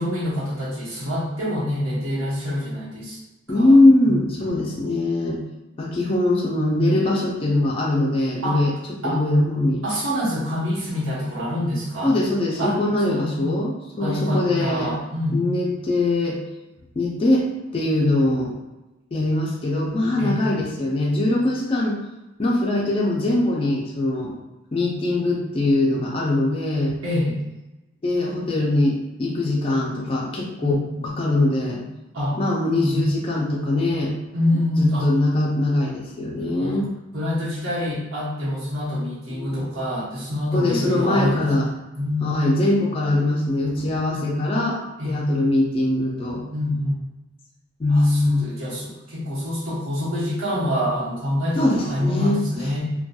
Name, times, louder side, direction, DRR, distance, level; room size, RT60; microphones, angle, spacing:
voice 1, 0.0-3.2 3.5-3.8 4.0-4.2 8.4-8.6 9.0-9.2 9.8-12.2 12.6-12.8 13.1-13.5 14.0-15.4 20.2-20.3 27.0-27.4 30.6-30.8 32.1-32.4 32.8-33.1 34.3-35.1 36.6-36.8 37.1-41.5 41.9-42.5 44.1-44.5 45.0-45.2 46.5-47.0 47.9-52.8, left 1 dB, 90° right, -7 dB, 1.0 m, -26 dB
voice 2, 3.5-5.4 5.8-8.7 9.0-9.8 12.0-14.9 15.3-16.4 17.0-17.5 17.7-18.5 19.1-22.0 22.4-24.3 24.7-27.0 28.0-30.8 31.0-31.8 32.4-34.1 34.8-36.9 39.3-39.6 40.5-41.7 42.2-44.8 45.0-46.4 47.8-48.5 51.6-52.4, left 2 dB, 25° left, -3 dB, 0.3 m, -21 dB
2.7 x 2.2 x 2.3 m, 1.0 s
head